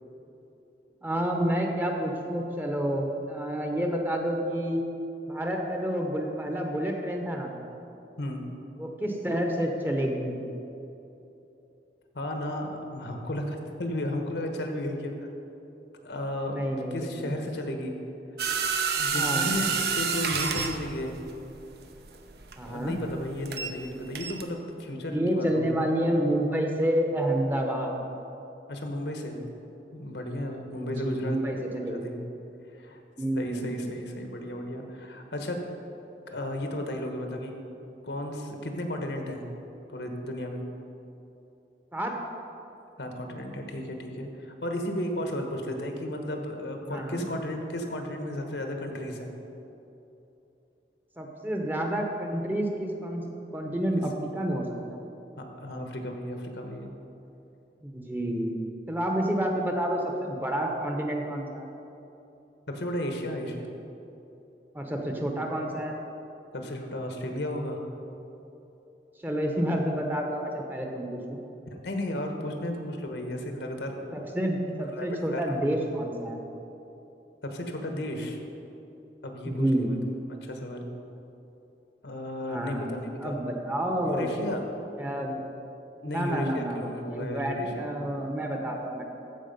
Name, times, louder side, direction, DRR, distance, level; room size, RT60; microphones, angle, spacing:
voice 1, 1.0-4.8 5.3-7.6 8.8-10.4 16.5-17.3 19.1-19.5 22.6-22.9 25.1-28.1 30.7-32.1 33.2-33.7 41.9-42.1 45.8-45.9 46.9-47.2 51.2-53.2 53.5-55.0 57.8-58.5 58.9-61.7 64.7-65.9 69.2-71.4 74.1-76.4 79.4-79.9 82.5-82.9 83.2-84.4 85.0-85.4 86.0-89.0, right 1 dB, 10° right, 1 dB, 0.8 m, -29 dB
voice 2, 12.1-15.1 16.0-16.6 16.9-18.0 19.0-21.1 22.7-25.9 28.7-29.4 29.9-31.4 31.8-32.2 32.8-33.0 33.4-35.6 36.3-37.5 38.0-39.4 39.9-40.6 43.0-49.3 55.4-56.9 62.7-63.7 66.5-67.8 71.8-74.2 74.9-75.1 75.3-75.6 77.4-78.4 79.2-79.7 80.4-80.9 82.0-83.3 84.0-84.6 86.0-88.1, left 1 dB, 80° left, 4 dB, 1.1 m, -34 dB
sound 1, 18.4-23.9 24.1-24.4, right 5 dB, 65° right, 0.7 m, -29 dB
14.5 x 4.8 x 5.3 m, 3.0 s
head